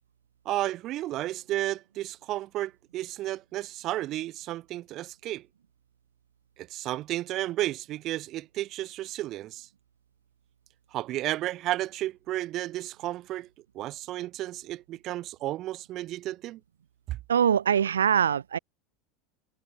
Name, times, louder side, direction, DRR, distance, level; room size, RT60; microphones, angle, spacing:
voice 1, 0.4-5.4 6.6-9.7 10.9-13.5 13.7-16.6 17.1-17.2, right 15 dB, 50° right, 6.3 m, -32 dB
voice 2, 17.3-18.6, right 8 dB, 85° right, 3.5 m, -23 dB
hypercardioid pair, 85°, 0 cm